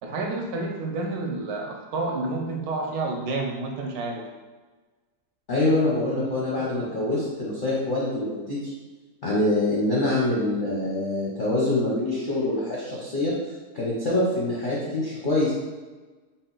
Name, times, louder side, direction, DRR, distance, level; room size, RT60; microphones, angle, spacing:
voice 1, 0.0-4.2, right 2 dB, 70° right, 2 dB, 1.0 m, -29 dB
voice 2, 5.5-8.7 9.2-15.5, left 2 dB, 55° left, -6 dB, 0.5 m, -25 dB
3.9 x 2.2 x 3.8 m, 1.3 s
omnidirectional pair, 1.8 m